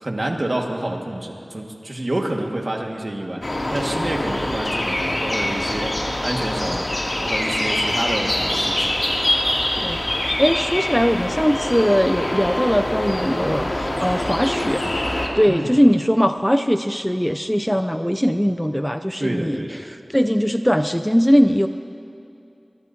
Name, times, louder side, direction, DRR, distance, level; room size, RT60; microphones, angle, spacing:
voice 1, 0.0-3.4 3.7-6.9 7.2-9.0 15.5-15.7 19.2-19.8, right 1 dB, 50° right, 1 dB, 1.8 m, -28 dB
sound 1, 3.4-15.3, left 1 dB, 55° left, 2.6 m, -24 dB
voice 2, 9.8-21.7, equal, 5° left, 8 dB, 0.4 m, -20 dB
23.0 x 22.5 x 2.8 m, 2.6 s
wide cardioid pair, 50°, 0 cm